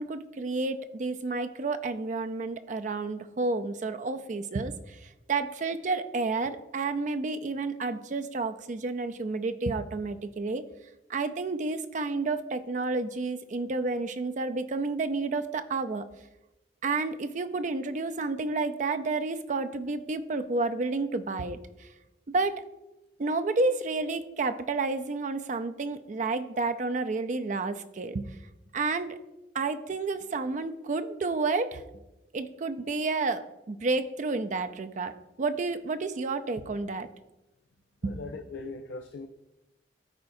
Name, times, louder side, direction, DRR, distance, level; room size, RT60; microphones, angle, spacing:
voice 1, 0.0-10.6 11.1-16.0 16.8-21.9 22.3-22.6 23.2-28.3 28.7-29.2 29.5-31.8 32.3-37.1 38.0-38.1, right 3 dB, 45° right, 9 dB, 0.4 m, -30 dB
voice 2, 38.0-39.3, left 3 dB, 80° left, 5 dB, 0.4 m, -40 dB
13.0 x 4.7 x 2.6 m, 0.98 s
head